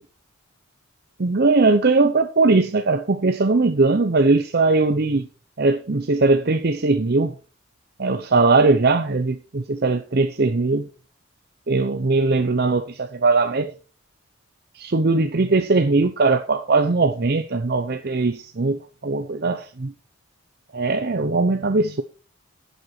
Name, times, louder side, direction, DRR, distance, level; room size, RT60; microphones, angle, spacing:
voice 1, 1.2-5.3 5.6-7.3 8.0-10.9 11.7-13.7 14.8-18.8 19.0-19.9 20.7-22.0, right 3 dB, 45° right, 0.6 m, -20 dB
11.0 x 7.8 x 4.4 m
head